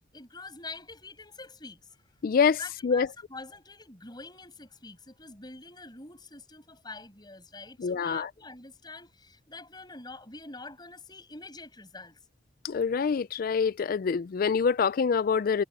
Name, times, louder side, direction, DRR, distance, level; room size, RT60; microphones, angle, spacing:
voice 1, 0.1-1.8 2.6-12.2, left 3 dB, 25° left, 7.0 m, -45 dB
voice 2, 2.2-3.1 7.8-8.3 12.6-15.6, left 6 dB, 50° left, 0.4 m, -26 dB
head